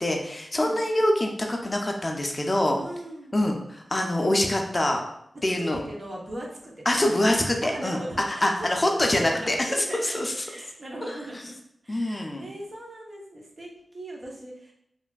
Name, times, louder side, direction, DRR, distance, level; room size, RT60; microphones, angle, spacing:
voice 1, 0.0-2.8 3.3-5.0 5.4-5.8 6.9-8.0 8.3-9.6 10.0-10.3 11.9-12.5, left 1 dB, 30° left, 2 dB, 0.4 m, -25 dB
voice 2, 2.7-3.4 5.6-6.7 7.1-8.7 9.0-10.2 10.4-11.6 11.8-14.7, right 1 dB, 50° right, -2 dB, 0.7 m, -39 dB
3.2 x 2.5 x 2.2 m, 0.73 s
wide cardioid pair, 60°, 0 cm